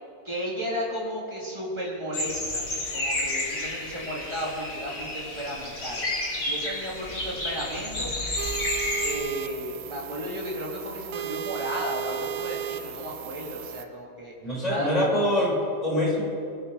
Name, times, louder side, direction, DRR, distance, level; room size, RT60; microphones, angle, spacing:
voice 1, 0.3-2.6 2.9-6.1 6.5-8.1 9.0-14.3 14.7-14.9, equal, 15° right, -4 dB, 3.4 m, -34 dB
sound 1, 2.1-9.2, left 1 dB, 55° left, 3.6 m, -31 dB
sound 2, 8.4-13.8, right 10 dB, 70° right, 1.3 m, -35 dB
voice 2, 14.4-16.2, left 1 dB, 20° left, -4 dB, 4.7 m, -24 dB
22.5 x 10.5 x 5.7 m, 2.4 s
omnidirectional pair, 1.8 m